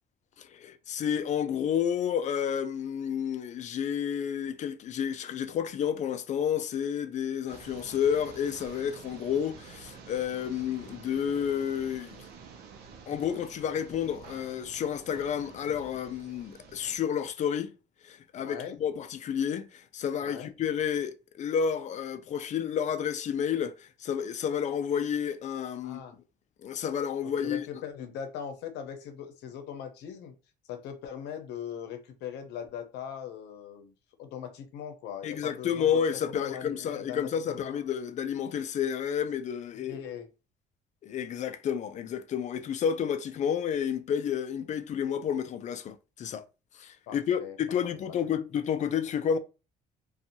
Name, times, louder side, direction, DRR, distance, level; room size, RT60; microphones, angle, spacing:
voice 1, 0.4-12.3 13.1-17.7 18.0-26.0 26.6-27.7 35.2-40.0 41.0-46.4 46.7-49.4, left 8 dB, 45° left, 0.4 m, -30 dB
sound 1, 7.5-17.0, right 5 dB, 70° right, 0.6 m, -49 dB
voice 2, 18.4-18.8 20.2-20.5 25.8-26.2 27.2-30.3 30.7-33.9 34.2-37.7 39.8-40.3 47.1-47.6 47.9-48.4, left 8 dB, 80° left, 0.7 m, -40 dB
2.6 x 2.3 x 2.7 m
cardioid pair, 110°, 17 cm